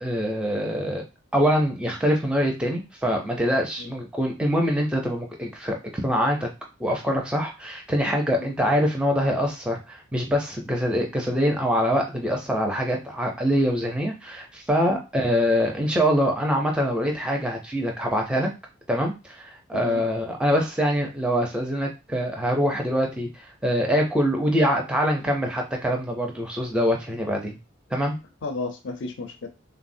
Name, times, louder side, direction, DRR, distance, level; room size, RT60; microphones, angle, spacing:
voice 1, 0.0-1.0 1.3-6.5 6.8-18.5 18.9-27.6 27.9-28.2, equal, 5° right, 0 dB, 0.4 m, -24 dB
voice 2, 19.7-20.0 28.4-29.5, left 3 dB, 60° left, 6 dB, 0.4 m, -33 dB
3.4 x 2.0 x 2.6 m, 0.27 s
head